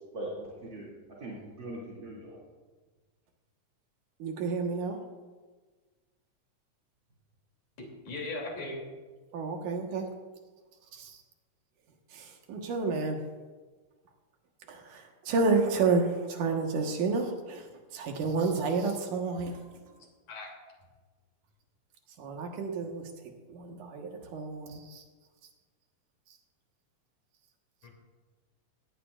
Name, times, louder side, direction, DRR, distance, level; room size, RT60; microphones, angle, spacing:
voice 1, 0.1-2.4, right 1 dB, 40° right, -6 dB, 3.1 m, -41 dB
voice 2, 4.2-5.0 9.3-10.1 10.9-11.2 12.1-13.2 14.7-17.7 17.9-19.6 22.2-23.0 23.5-25.0, right 4 dB, 90° right, 2 dB, 2.9 m, -30 dB
voice 3, 8.1-8.9 20.3-20.5 27.8-27.9, left 2 dB, 70° left, 0 dB, 4.3 m, -37 dB
17.0 x 17.0 x 2.5 m, 1.3 s
omnidirectional pair, 3.4 m